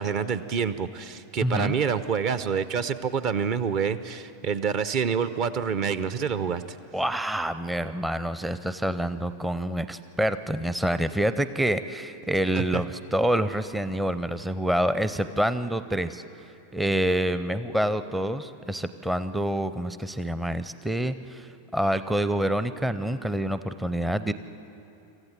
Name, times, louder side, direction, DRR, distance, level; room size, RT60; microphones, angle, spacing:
voice 1, 0.0-6.6 12.5-12.8, right 6 dB, 40° right, 14 dB, 0.7 m, -27 dB
voice 2, 1.4-1.7 6.9-16.2 16.7-24.3, right 1 dB, 5° right, 12 dB, 0.6 m, -27 dB
26.5 x 14.5 x 7.4 m, 2.7 s
figure-of-eight pair, 90°, 0 cm